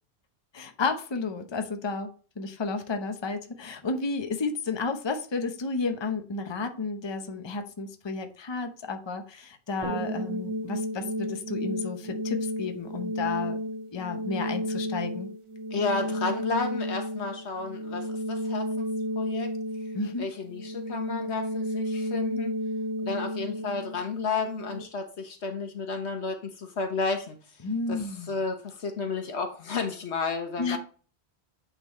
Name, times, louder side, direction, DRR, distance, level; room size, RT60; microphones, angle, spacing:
voice 1, 0.5-2.1 2.4-13.6 13.9-15.3 19.9-20.3 27.6-28.3 30.6-30.8, left 4 dB, 30° left, 6 dB, 0.8 m, -32 dB
sound 1, 9.8-24.8, equal, 30° right, 0.8 m, -32 dB
voice 2, 15.7-19.5 20.2-22.5 23.0-27.4 27.9-30.8, left 4 dB, 85° left, 5 dB, 1.4 m, -32 dB
8.7 x 4.1 x 3.1 m, 0.38 s
omnidirectional pair, 1.1 m